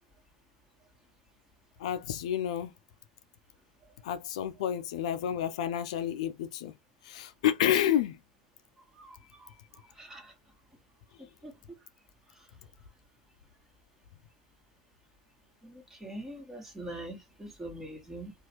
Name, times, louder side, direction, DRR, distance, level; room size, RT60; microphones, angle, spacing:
voice 1, 1.8-2.7 4.0-6.7 7.0-8.2, left 10 dB, 80° left, 0.4 m, -29 dB
voice 2, 8.9-10.3 11.2-11.5 12.3-12.5 15.6-18.3, right 1 dB, 10° right, 1.5 m, -44 dB
2.8 x 2.4 x 2.9 m
supercardioid pair, 105°, 3 cm